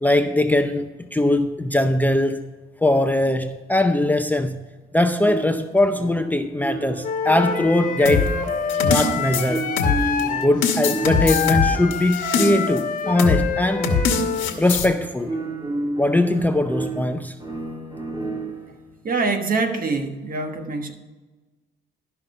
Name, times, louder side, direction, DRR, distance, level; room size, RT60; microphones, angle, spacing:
voice 1, 0.0-2.4 2.8-4.6 4.9-8.3 8.8-9.7 10.4-13.9 14.6-15.4 16.0-17.3, left 1 dB, 10° left, 0.6 m, -21 dB
sound 1, 5.2-18.8, right 2 dB, 25° right, 2.0 m, -32 dB
Wind instrument woodwind instrument, 7.0-14.5, left 6 dB, 40° left, 1.3 m, -26 dB
sound 2, 8.1-10.2 10.6-12.8 13.2-13.4 13.8-14.9, left 5 dB, 85° left, 1.3 m, -22 dB
voice 2, 19.0-20.9, right 3 dB, 45° right, 1.4 m, -24 dB
12.5 x 5.7 x 5.5 m
cardioid pair, 90°, 20 cm